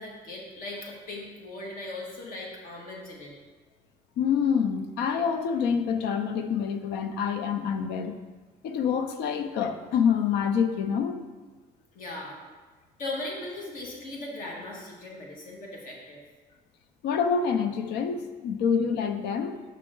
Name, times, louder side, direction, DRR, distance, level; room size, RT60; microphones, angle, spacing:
voice 1, 0.0-3.3 11.9-12.4 13.0-16.2, left 2 dB, 55° left, -2 dB, 1.8 m, -38 dB
voice 2, 4.2-8.2 8.6-11.3 17.0-19.6, left 7 dB, 80° left, 9 dB, 0.6 m, -27 dB
6.0 x 5.6 x 3.8 m, 1.3 s
cardioid pair, 110°, 17 cm